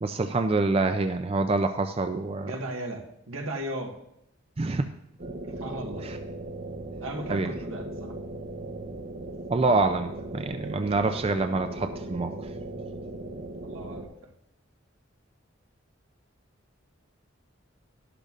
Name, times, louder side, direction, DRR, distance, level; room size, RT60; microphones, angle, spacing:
voice 1, 0.0-2.5 4.6-4.9 6.0-6.2 7.3-7.5 9.5-12.3, right 3 dB, 30° right, 7 dB, 0.4 m, -26 dB
voice 2, 2.4-3.9 5.5-6.0 7.0-8.1 13.6-14.3, right 1 dB, 85° right, 1 dB, 1.5 m, -36 dB
sound 1, 5.2-14.1, right 1 dB, 50° right, 0.9 m, -38 dB
12.0 x 11.5 x 2.5 m, 0.77 s
head